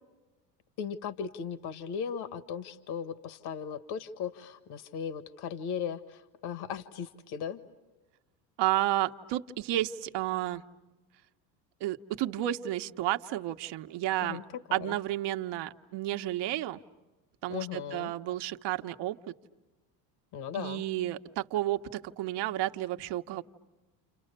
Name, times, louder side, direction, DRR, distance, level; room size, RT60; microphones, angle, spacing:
voice 1, 0.8-7.6 14.2-14.4 14.7-15.0 17.5-18.1 20.3-20.8, left 7 dB, 50° left, 11 dB, 1.6 m, -37 dB
voice 2, 8.6-10.6 11.8-14.4 14.7-16.8 17.4-19.3 20.5-23.4, right 14 dB, 55° right, 7 dB, 1.3 m, -31 dB
30.0 x 29.5 x 6.8 m, 1.1 s
supercardioid pair, 100°, 50 cm